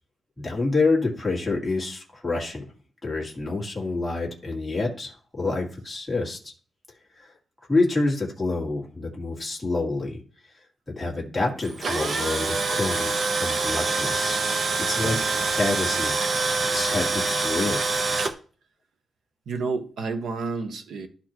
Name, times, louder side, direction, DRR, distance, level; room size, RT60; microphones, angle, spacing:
voice 1, 0.4-2.6 3.0-6.5 7.2-7.3 7.7-10.2 10.9-13.1 13.4-14.4 14.8-16.2 16.7-17.8, left 3 dB, 10° left, 1.8 m, -27 dB
Tools, 11.6-18.3, right 3 dB, 40° right, 0.8 m, -25 dB
voice 2, 15.0-15.4 19.5-21.1, right 4 dB, 80° right, 1.1 m, -30 dB
12.0 x 4.2 x 3.0 m
wide cardioid pair, 175°, 0 cm